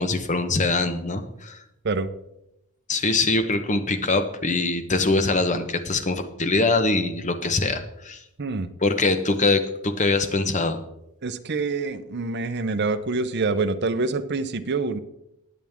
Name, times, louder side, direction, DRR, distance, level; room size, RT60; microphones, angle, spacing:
voice 1, 0.0-1.6 2.9-8.2 8.8-10.8, left 3 dB, 35° left, 9 dB, 1.0 m, -23 dB
voice 2, 11.2-15.0, right 3 dB, 50° right, 9 dB, 0.7 m, -26 dB
19.5 x 7.3 x 3.6 m, 0.85 s
head